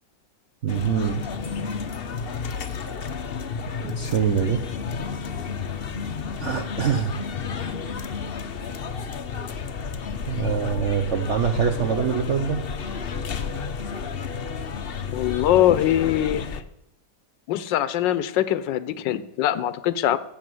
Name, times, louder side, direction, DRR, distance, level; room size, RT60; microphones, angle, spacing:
voice 1, 0.6-1.2 3.8-4.6 6.4-7.1 10.3-12.6, right 7 dB, 50° right, 5 dB, 1.0 m, -24 dB
sound 1, 0.7-16.6, left 5 dB, 50° left, 0.7 m, -31 dB
voice 2, 15.1-16.6 17.5-20.2, left 12 dB, 80° left, 15 dB, 1.4 m, -22 dB
16.0 x 7.3 x 7.8 m, 0.84 s
omnidirectional pair, 2.0 m